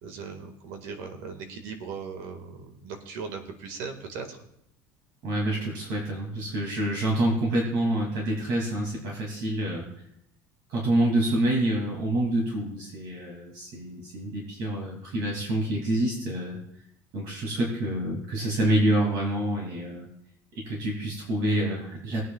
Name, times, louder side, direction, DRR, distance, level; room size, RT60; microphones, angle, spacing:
voice 1, 0.0-4.4, right 5 dB, 70° right, 6 dB, 1.8 m, -38 dB
voice 2, 5.2-9.9 10.7-16.6 17.1-20.1 20.5-22.2, right 1 dB, 50° right, -2 dB, 2.5 m, -27 dB
20.5 x 9.3 x 2.3 m, 0.76 s
cardioid pair, 180°, 8 cm